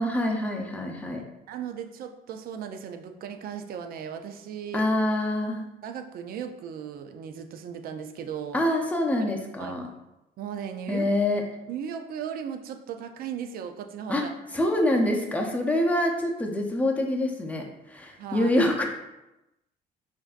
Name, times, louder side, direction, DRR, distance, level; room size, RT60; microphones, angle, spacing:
voice 1, 0.0-1.2 4.7-5.7 8.5-9.9 10.9-11.4 14.1-14.2 14.5-18.8, left 1 dB, 10° left, 1 dB, 0.6 m, -25 dB
voice 2, 1.1-4.9 5.8-8.6 9.2-9.8 10.4-11.1 11.7-14.3 18.2-18.5, right 8 dB, 60° right, 7 dB, 0.5 m, -37 dB
5.3 x 2.6 x 2.5 m, 0.93 s
cardioid pair, 110°, 17 cm